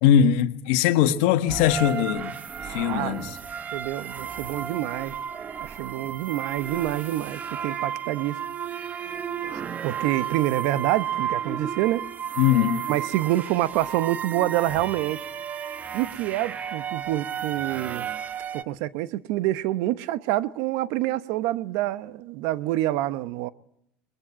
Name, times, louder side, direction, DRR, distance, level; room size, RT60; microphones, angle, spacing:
voice 1, 0.0-2.3 2.7-3.3 12.4-12.8, left 10 dB, 80° left, 1.5 m, -20 dB
sound 1, 1.5-18.6, right 8 dB, 35° right, 1.1 m, -33 dB
voice 2, 2.8-3.2 3.7-5.1 5.6-8.4 8.8-8.9 9.5-12.1 12.9-15.2 15.9-18.1 18.5-23.5, right 15 dB, 75° right, 0.9 m, -27 dB
22.5 x 21.5 x 8.6 m
supercardioid pair, 110°, 5 cm